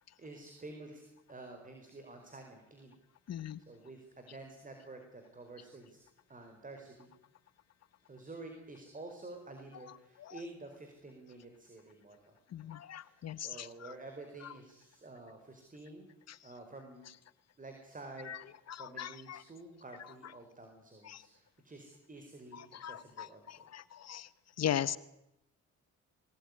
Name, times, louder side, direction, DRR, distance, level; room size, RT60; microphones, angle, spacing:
voice 1, 0.2-2.9 3.3-3.4 3.7-6.0 6.3-7.1 8.1-16.1 16.4-17.1 17.6-23.7, right 2 dB, 25° right, 5 dB, 4.9 m, -50 dB
voice 2, 3.3-3.6 9.8-10.4 12.5-13.9 14.4-14.5 16.3-16.5 18.2-19.4 21.0-21.3 22.5-24.3 24.6-25.0, left 10 dB, 55° left, 16 dB, 1.1 m, -40 dB
22.0 x 19.0 x 9.9 m, 0.86 s
cardioid pair, 90°, 30 cm